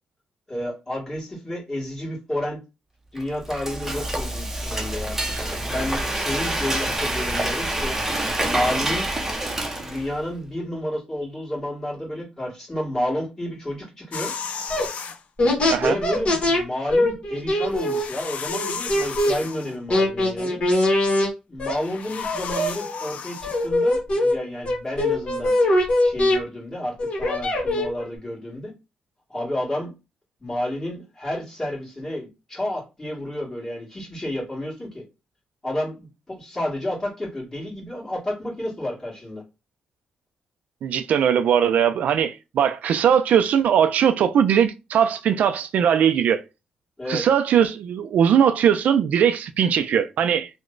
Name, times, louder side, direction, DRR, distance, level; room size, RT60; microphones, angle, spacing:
voice 1, 0.5-2.6 3.1-5.2 5.6-8.0 8.4-9.1 9.8-14.3 15.4-20.6 21.5-25.5 26.0-28.7 29.3-29.9 30.4-35.0 35.6-39.4 47.0-47.2, left 1 dB, 20° left, 1.6 m, -30 dB
Frying (food), 3.2-10.2, right 1 dB, 15° right, 0.6 m, -27 dB
sound 1, 14.1-15.2 17.6-19.8 21.7-23.7, left 6 dB, 60° left, 0.5 m, -33 dB
sound 2, 14.7-14.8 15.4-16.6 16.9-19.3 19.9-21.3 21.6-21.8 22.2-23.1 23.4-24.3 24.6-26.4 27.0-28.1, left 1 dB, 45° left, 1.2 m, -22 dB
voice 2, 40.8-46.4 47.1-50.5, right 8 dB, 70° right, 0.3 m, -20 dB
3.0 x 2.1 x 3.7 m
cardioid pair, 125°, 3 cm